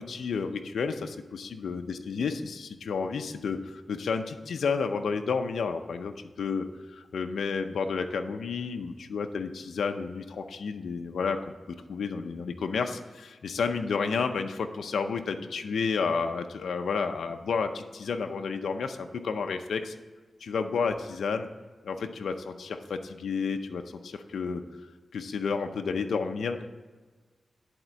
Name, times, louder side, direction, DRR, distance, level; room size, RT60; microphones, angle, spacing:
voice 1, 0.0-11.4 11.7-19.9 20.4-21.5 21.8-24.6 25.1-26.7, left 5 dB, 90° left, 6 dB, 0.6 m, -31 dB
11.0 x 4.3 x 7.4 m, 1.3 s
cardioid pair, 75°, 0 cm